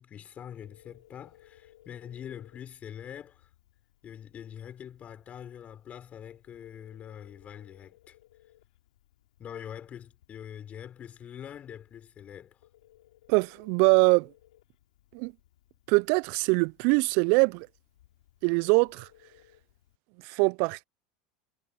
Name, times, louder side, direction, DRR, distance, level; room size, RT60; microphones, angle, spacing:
voice 1, 0.0-3.5 4.0-8.2 9.4-12.6, left 9 dB, 35° left, 4.9 m, -44 dB
Telephone, 0.5-19.9, left 14 dB, 75° left, 5.4 m, -62 dB
voice 2, 13.3-14.3 15.1-15.3 15.9-17.7 18.4-19.1 20.2-20.8, right 33 dB, 60° right, 0.5 m, -23 dB
hypercardioid pair, 85°, 4 cm